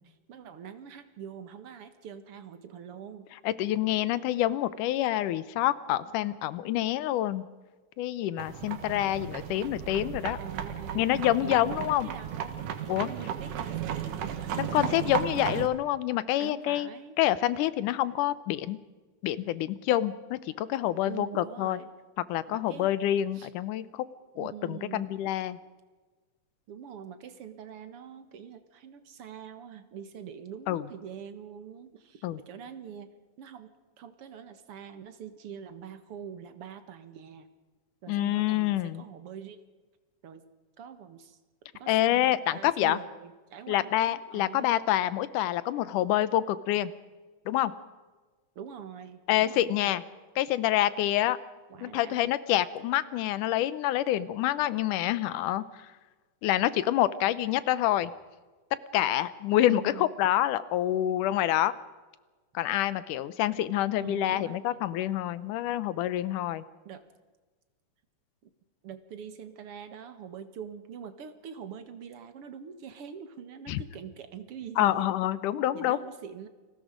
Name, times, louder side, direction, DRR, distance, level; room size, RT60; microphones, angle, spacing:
voice 1, 0.1-3.3 10.4-12.6 13.0-13.9 14.2-15.3 16.4-17.2 21.0-21.9 22.5-22.9 23.3-23.5 24.3-25.2 26.7-33.1 33.4-37.5 38.0-39.6 40.2-40.4 40.8-41.4 41.7-44.8 48.6-50.0 51.7-52.3 59.7-60.1 64.0-64.6 64.9-65.0 66.8-67.0 68.4-68.5 68.8-75.1 75.7-76.5, right 8 dB, 55° right, 9 dB, 2.2 m, -44 dB
voice 2, 3.4-7.4 8.0-10.4 11.0-12.1 12.9-13.1 14.6-16.9 17.2-18.8 19.2-21.8 22.3-24.1 24.4-25.6 30.7-30.8 32.2-32.4 38.1-39.0 41.9-43.0 43.7-46.9 47.5-47.7 49.3-50.0 50.4-51.4 51.8-55.6 56.4-58.1 58.9-61.7 62.5-66.6 73.7-73.8 74.8-76.0, left 13 dB, 85° left, 16 dB, 2.4 m, -27 dB
sound 1, 8.4-15.7, right 9 dB, 80° right, 3.0 m, -35 dB
29.0 x 20.0 x 5.1 m, 1.3 s
omnidirectional pair, 3.6 m